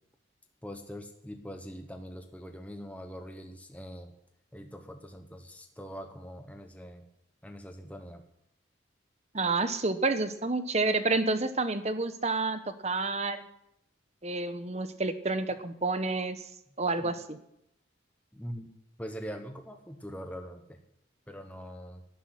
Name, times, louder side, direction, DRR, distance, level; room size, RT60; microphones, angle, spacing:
voice 1, 0.6-4.1 4.5-7.0 7.4-8.2 17.0-17.2 18.3-18.7 19.0-20.8 21.3-22.0, equal, 5° left, 5 dB, 1.1 m, -43 dB
voice 2, 9.3-13.4 14.2-16.4 16.8-17.4, right 3 dB, 35° right, 10 dB, 1.0 m, -29 dB
12.5 x 10.0 x 10.0 m, 0.81 s
head